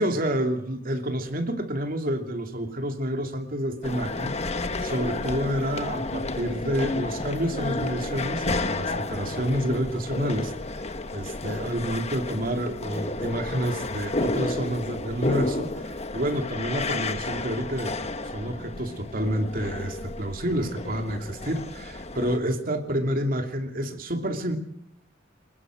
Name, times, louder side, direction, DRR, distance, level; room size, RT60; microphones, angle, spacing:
voice 1, 0.0-4.3 4.6-10.8 11.1-17.9 18.3-24.6, equal, 45° right, 5 dB, 2.8 m, -29 dB
sound 1, 3.8-22.4, left 2 dB, 30° left, 1.2 m, -31 dB
22.5 x 20.5 x 6.4 m, 0.73 s
head